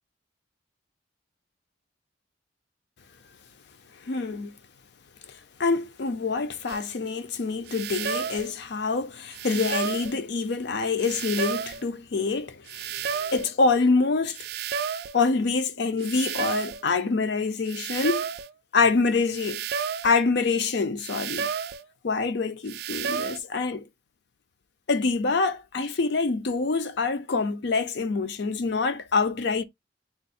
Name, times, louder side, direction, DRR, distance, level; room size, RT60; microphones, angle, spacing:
voice 1, 4.1-4.5 5.6-14.4 15.1-18.2 18.7-19.6 20.0-21.5 22.0-23.8 24.9-29.6, left 4 dB, 60° left, 0.5 m, -26 dB
sound 1, 6.7-6.8 7.7-8.5 9.3-10.2 11.0-11.8 12.7-13.5 14.3-15.2 16.0-16.8 17.7-18.5 19.3-20.2 21.0-21.8 22.7-23.4, right 7 dB, 55° right, 0.3 m, -31 dB
3.5 x 2.1 x 4.1 m
head